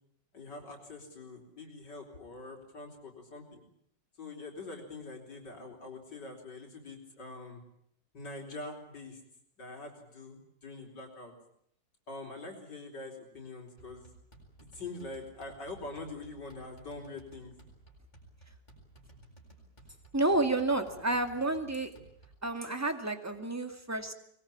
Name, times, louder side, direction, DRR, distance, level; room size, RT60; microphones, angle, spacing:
voice 1, 0.3-3.6 4.2-7.6 8.1-9.2 9.6-11.3 12.1-14.1 14.7-17.5, left 2 dB, 70° left, 2 dB, 4.8 m, -44 dB
sound 1, 13.8-22.5, right 2 dB, 25° left, 7.7 m, -57 dB
voice 2, 20.1-21.9 22.4-24.1, right 2 dB, 10° right, 7 dB, 2.2 m, -30 dB
24.5 x 21.5 x 8.7 m, 0.69 s
omnidirectional pair, 2.0 m